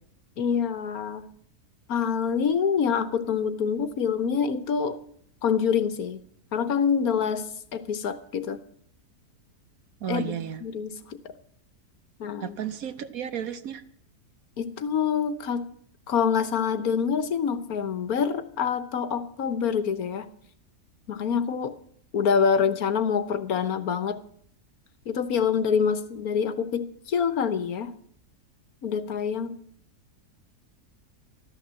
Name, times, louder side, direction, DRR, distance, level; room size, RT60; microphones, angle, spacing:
voice 1, 0.4-1.2 1.9-5.0 5.4-6.2 6.5-8.6 10.1-11.2 12.2-12.6 14.6-15.7 16.1-20.3 21.1-21.8 22.1-24.2 25.1-27.9 28.8-29.6, left 6 dB, 65° left, 12 dB, 1.4 m, -26 dB
voice 2, 10.0-10.6 12.4-13.8, right 9 dB, 65° right, 11 dB, 1.3 m, -33 dB
14.0 x 12.5 x 7.5 m, 0.64 s
omnidirectional pair, 1.7 m